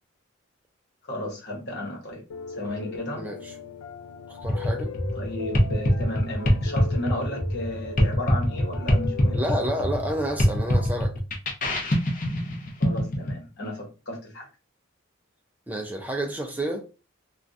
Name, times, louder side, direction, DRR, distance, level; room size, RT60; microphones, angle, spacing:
voice 1, 1.1-2.2 2.5-3.3 5.1-9.4 12.8-14.5, left 1 dB, 55° left, 1.1 m, -34 dB
Piano, 2.3-11.0, left 6 dB, 75° left, 0.3 m, -39 dB
voice 2, 3.2-3.5 4.3-4.9 9.3-11.2 15.7-16.9, right 1 dB, 10° right, 0.4 m, -30 dB
sound 1, 4.4-13.3, equal, 40° left, 0.7 m, -24 dB
3.5 x 2.3 x 2.6 m
head